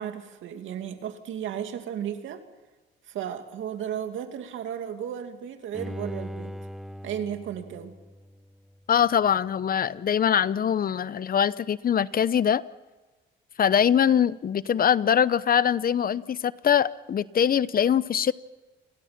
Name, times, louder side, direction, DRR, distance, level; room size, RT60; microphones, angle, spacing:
voice 1, 0.0-2.4 3.1-6.5 7.0-7.9, right 9 dB, 80° right, 7 dB, 2.5 m, -34 dB
Bowed string instrument, 5.7-8.9 9.3-9.4, equal, ahead, 0.9 m, -40 dB
voice 2, 8.9-12.6 13.6-18.3, left 8 dB, 45° left, 17 dB, 0.8 m, -23 dB
29.5 x 23.0 x 6.0 m, 1.2 s
cardioid pair, 90°, 20 cm